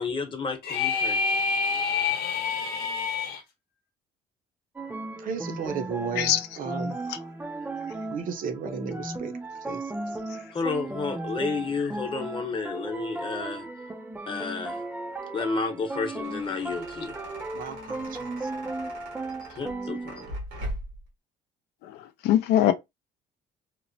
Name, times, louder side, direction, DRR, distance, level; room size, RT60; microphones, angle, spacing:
voice 1, 0.0-1.4 10.5-13.7 14.3-14.8 15.3-17.2 19.6-20.3, left 4 dB, 30° left, 0.9 m, -31 dB
sound 1, 0.6-3.4, left 5 dB, 60° left, 0.8 m, -27 dB
sound 2, 4.8-20.4, right 2 dB, 10° right, 0.4 m, -36 dB
voice 2, 5.2-7.0 8.1-9.3 9.7-10.0 17.5-18.5, right 6 dB, 55° right, 0.6 m, -34 dB
voice 3, 6.1-6.5 7.1-7.2 22.2-22.7, left 12 dB, 80° left, 0.4 m, -21 dB
sound 3, 15.9-21.1, right 1 dB, 85° right, 1.1 m, -40 dB
2.9 x 2.1 x 2.6 m
cardioid pair, 110°, 17 cm